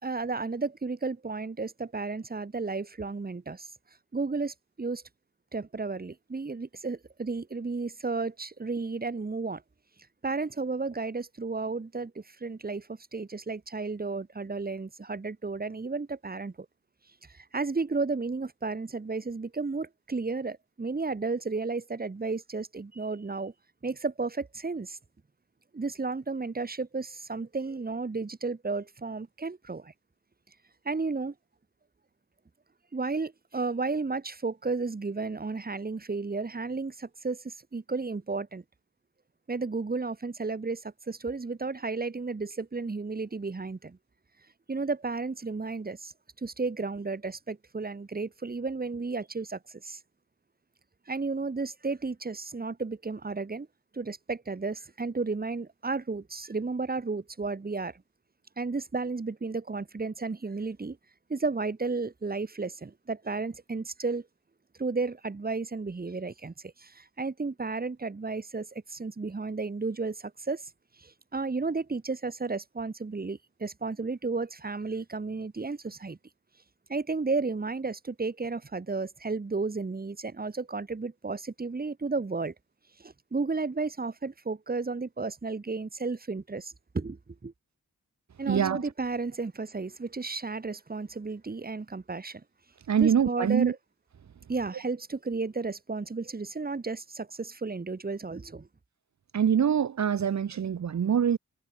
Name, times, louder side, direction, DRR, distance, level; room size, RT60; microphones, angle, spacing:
voice 1, 0.0-3.7 4.1-5.0 5.5-9.6 10.2-16.5 17.3-23.5 23.8-25.0 25.7-29.9 30.9-31.3 32.9-38.6 39.5-44.0 44.7-46.1 46.4-50.0 51.1-53.7 53.9-58.0 58.6-61.0 61.3-64.3 64.8-70.7 71.0-76.2 76.9-82.5 83.0-87.5 88.4-92.4 93.0-93.8 94.5-98.7, right 3 dB, 30° right, 2.1 m, -33 dB
voice 2, 88.5-88.8 92.9-93.7 99.3-101.4, right 8 dB, 65° right, 1.0 m, -24 dB
wide cardioid pair, 130°, 30 cm